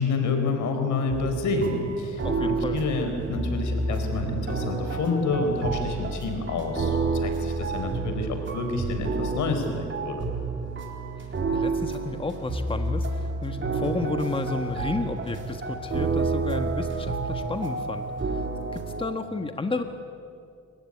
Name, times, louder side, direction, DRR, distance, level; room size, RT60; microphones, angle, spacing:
voice 1, 0.0-10.2, left 3 dB, 75° left, 5 dB, 4.4 m, -28 dB
sound 1, 1.1-19.1, right 3 dB, 40° right, 4.1 m, -30 dB
voice 2, 2.2-2.8 11.5-18.4 18.7-19.8, left 3 dB, 15° left, 6 dB, 1.4 m, -31 dB
27.5 x 15.5 x 9.9 m, 2.4 s
cardioid pair, 90°, 30 cm